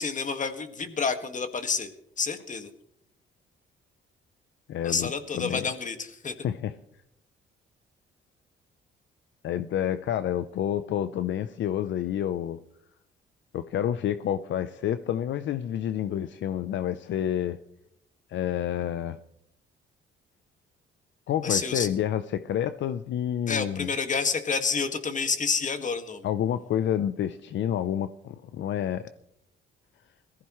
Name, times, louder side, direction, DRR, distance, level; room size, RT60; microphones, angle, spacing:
voice 1, 0.0-1.9 2.2-2.7 4.8-6.3 21.4-21.9 23.5-26.3, left 5 dB, 40° left, 1.9 m, -29 dB
voice 2, 4.7-5.6 6.4-6.7 9.4-12.6 13.5-17.6 18.3-19.2 21.3-23.9 26.2-29.1, left 10 dB, 70° left, 0.7 m, -29 dB
21.5 x 15.0 x 3.2 m
cardioid pair, 90°, 20 cm